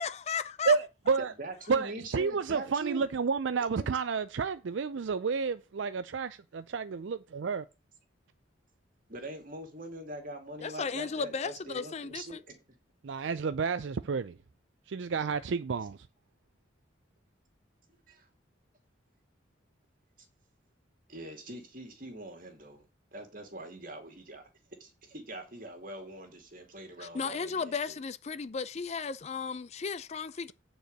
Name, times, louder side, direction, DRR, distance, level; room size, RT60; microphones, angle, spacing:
voice 1, 0.0-0.7 10.6-12.4 27.0-30.5, left 5 dB, 35° left, 0.4 m, -35 dB
voice 2, 0.7-1.3 1.7-7.6 13.0-14.3 14.9-16.0, right 5 dB, 65° right, 0.4 m, -30 dB
voice 3, 1.2-3.0 9.1-12.5 18.1-18.3 21.1-22.9 23.1-24.4 24.8-28.0, right 1 dB, 45° right, 2.4 m, -43 dB
9.3 x 4.8 x 6.5 m
head